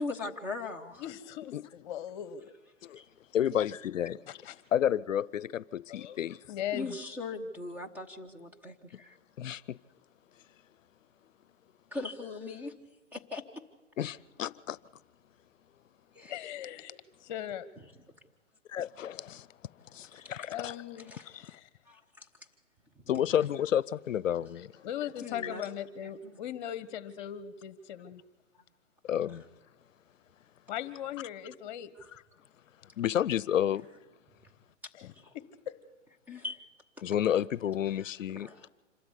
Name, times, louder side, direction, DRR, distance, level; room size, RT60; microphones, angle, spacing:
voice 1, 0.0-1.1 3.0-3.1 6.7-9.2 11.9-12.7 13.1-13.4 16.1-16.3 20.3-20.4 21.1-21.2 21.9-22.3 25.2-25.7 26.0-26.3 35.1-35.3 36.3-36.6 38.0-38.7, left 3 dB, 5° right, 1.1 m, -40 dB
voice 2, 1.0-2.5 4.3-4.6 5.9-6.2 6.5-7.0 8.4-8.5 16.3-17.7 20.5-21.7 24.8-28.2 30.7-31.9 34.9-35.1 35.7-35.8, left 10 dB, 35° left, 1.3 m, -39 dB
voice 3, 3.3-4.2 4.7-6.4 9.4-9.8 14.0-14.8 18.7-19.5 19.9-20.7 23.1-24.7 29.0-29.4 33.0-33.9 37.0-38.5, left 10 dB, 90° left, 0.6 m, -30 dB
26.5 x 13.0 x 8.2 m
hypercardioid pair, 145°, 37 cm